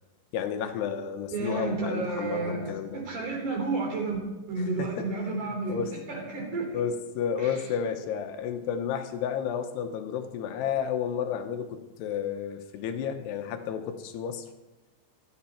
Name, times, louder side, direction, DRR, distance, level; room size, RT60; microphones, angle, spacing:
voice 1, 0.3-3.0 4.6-5.9 6.7-14.5, left 8 dB, 75° left, 7 dB, 2.7 m, -32 dB
voice 2, 1.3-4.2 4.5-6.8 7.4-7.5, right 3 dB, 45° right, 0 dB, 5.0 m, -31 dB
17.0 x 13.0 x 4.4 m, 1.1 s
omnidirectional pair, 5.4 m